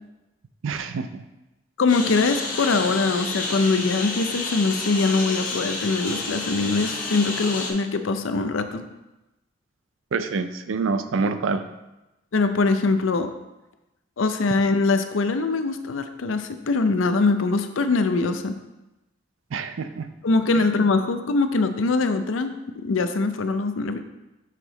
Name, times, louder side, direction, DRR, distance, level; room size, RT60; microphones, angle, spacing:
voice 1, 0.6-1.2 10.1-11.6 19.5-20.1 20.5-20.7, right 4 dB, 85° right, 10 dB, 0.4 m, -26 dB
voice 2, 1.8-8.8 12.3-13.3 14.2-18.5 20.2-24.0, left 3 dB, 80° left, 9 dB, 0.5 m, -22 dB
Engine, 1.9-7.7, left 3 dB, 45° left, 1.0 m, -30 dB
5.8 x 4.9 x 3.9 m, 1.0 s
head